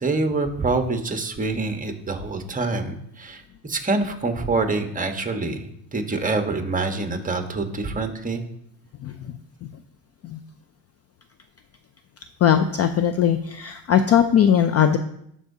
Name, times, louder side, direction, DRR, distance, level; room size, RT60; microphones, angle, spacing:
voice 1, 0.0-8.4, right 3 dB, 15° right, 5 dB, 1.1 m, -26 dB
voice 2, 12.4-15.0, left 9 dB, 35° left, 9 dB, 0.4 m, -19 dB
12.5 x 4.8 x 2.7 m, 0.75 s
supercardioid pair, 95°, 47 cm